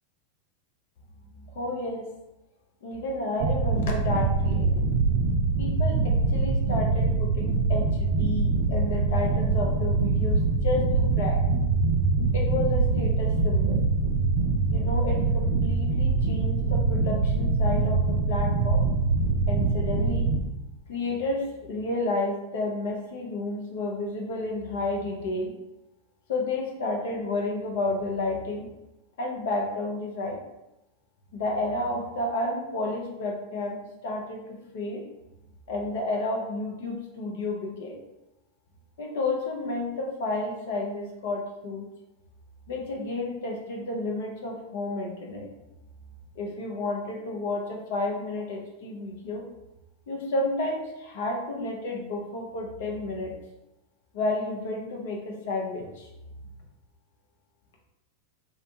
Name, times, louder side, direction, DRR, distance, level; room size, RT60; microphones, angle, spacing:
voice 1, 1.5-2.1 2.8-4.8 5.6-11.4 12.3-13.8 14.7-18.8 19.5-20.3 20.9-25.5 26.3-28.7 29.2-30.4 31.3-35.0 35.7-38.0 39.0-41.9 42.7-45.5 46.3-49.4 50.1-53.3 54.1-56.1, left 2 dB, 65° left, 0 dB, 0.6 m, -31 dB
sound 1, 3.4-20.4, right 3 dB, 60° right, 0.4 m, -24 dB
2.6 x 2.1 x 2.8 m, 0.95 s
figure-of-eight pair, 90°, 0 cm